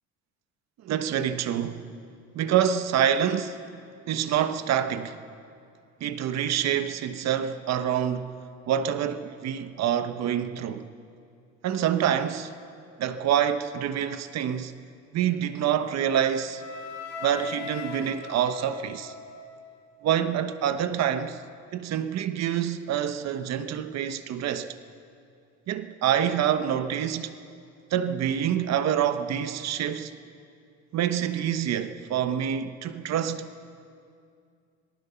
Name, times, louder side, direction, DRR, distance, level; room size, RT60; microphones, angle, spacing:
voice 1, 0.8-1.9 2.3-3.6 4.1-5.2 6.0-8.3 8.7-10.9 11.6-12.5 13.0-14.7 15.1-16.6 17.2-19.1 20.0-21.4 21.7-24.7 25.7-27.3 27.9-30.1 30.9-33.5, right 9 dB, 55° right, 1.2 m, -26 dB
Wind instrument woodwind instrument, 15.9-19.9, left 5 dB, 55° left, 2.8 m, -40 dB
26.0 x 18.5 x 5.8 m
cardioid pair, 110°, 32 cm